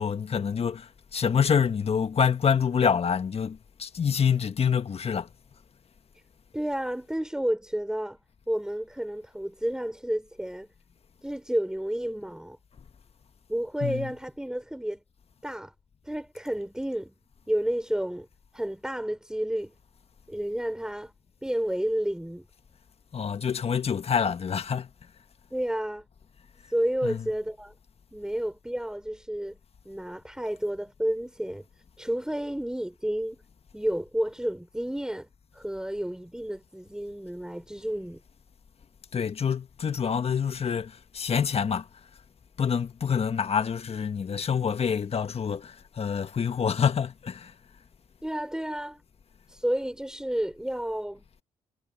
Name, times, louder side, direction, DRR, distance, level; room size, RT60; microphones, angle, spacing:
voice 1, 0.0-5.3 13.8-14.1 23.1-24.9 27.0-27.2 39.1-41.9 42.6-47.5, left 7 dB, 45° left, 1.6 m, -26 dB
voice 2, 6.5-8.2 8.5-10.7 11.2-12.6 13.5-15.0 15.4-15.7 16.1-17.1 17.5-18.3 18.5-19.7 20.3-21.1 21.4-22.4 25.5-26.0 26.7-27.7 28.1-29.6 29.8-31.7 32.0-33.4 33.7-35.3 35.5-38.2 48.2-49.0 49.5-51.2, right 1 dB, 5° right, 4.9 m, -31 dB
supercardioid pair, 65°, 14 cm